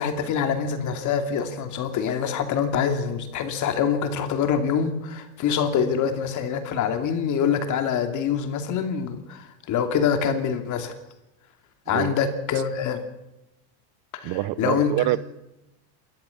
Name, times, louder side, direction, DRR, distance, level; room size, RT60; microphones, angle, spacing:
voice 1, 0.0-11.0 11.9-13.0 14.1-14.9, left 7 dB, 40° left, 2.7 m, -25 dB
voice 2, 11.9-12.2 14.2-15.2, right 17 dB, 50° right, 0.8 m, -25 dB
27.5 x 13.5 x 7.2 m
cardioid pair, 150°, 44 cm